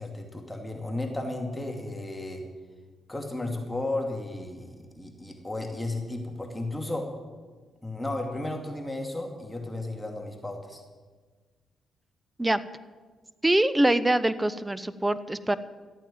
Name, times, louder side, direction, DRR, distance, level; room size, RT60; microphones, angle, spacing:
voice 1, 0.0-2.5 3.1-7.1 7.8-10.8, left 2 dB, 10° left, 2 dB, 2.6 m, -34 dB
voice 2, 13.4-15.6, right 1 dB, 15° right, 16 dB, 0.8 m, -24 dB
13.5 x 9.0 x 8.9 m, 1.4 s
supercardioid pair, 50°, 0 cm